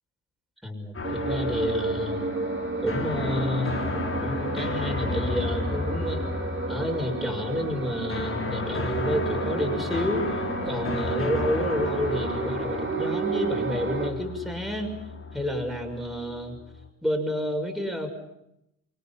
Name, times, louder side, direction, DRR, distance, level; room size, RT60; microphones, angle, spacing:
voice 1, 0.6-2.2 2.8-3.7 4.2-6.2 6.7-14.9 15.3-16.6 17.0-18.1, left 1 dB, ahead, 3 dB, 6.3 m, -30 dB
sound 1, 0.9-16.9, left 3 dB, 25° left, 3.2 m, -33 dB
sound 2, 1.0-14.1, right 4 dB, 25° right, 3.9 m, -31 dB
29.5 x 24.0 x 5.8 m, 0.81 s
figure-of-eight pair, 50°, 49 cm